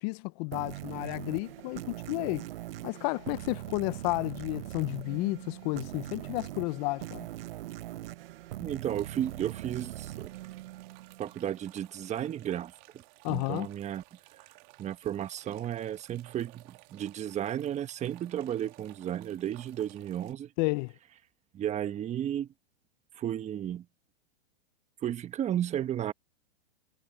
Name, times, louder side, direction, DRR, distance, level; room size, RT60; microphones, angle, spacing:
voice 1, 0.0-2.5 2.8-7.3 13.2-13.7 20.6-20.9, left 26 dB, 40° left, 1.3 m, -32 dB
sound 1, 0.5-11.7, right 15 dB, 60° right, 1.0 m, -42 dB
voice 2, 8.6-10.3 11.2-14.0 14.8-20.5 21.5-22.5 23.2-23.8 25.0-26.1, right 10 dB, 20° right, 1.5 m, -33 dB
sound 2, 8.8-20.3, right 29 dB, 45° right, 2.7 m, -57 dB
hypercardioid pair, 125°, 33 cm